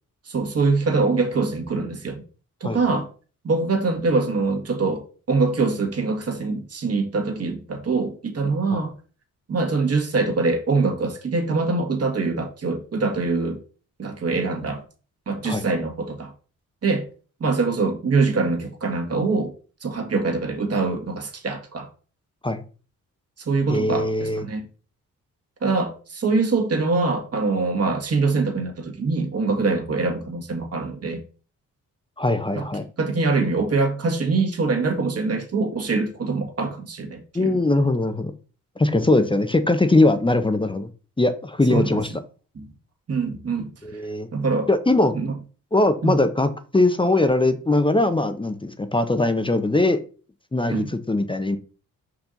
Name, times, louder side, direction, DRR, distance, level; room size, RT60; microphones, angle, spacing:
voice 1, 0.3-2.2 2.6-3.1 3.4-8.9 9.5-13.6 14.0-14.8 15.3-16.3 16.8-17.0 17.4-19.5 19.8-21.9 23.5-24.7 25.6-31.2 32.6-32.7 33.0-37.6 41.7-41.9 42.6-42.7 43.1-43.7 44.3-44.7 45.1-45.3 46.0-46.1 50.7-50.9, right 3 dB, 45° right, 1.8 m, -24 dB
voice 2, 2.6-3.0 15.4-15.6 22.4-22.6 23.7-24.5 32.2-32.8 37.3-38.3 38.8-40.9 41.2-42.1 43.8-44.3 44.7-45.1 45.7-50.0 50.5-51.6, left 2 dB, 15° left, 0.7 m, -21 dB
5.5 x 4.7 x 3.9 m
cardioid pair, 70°, 34 cm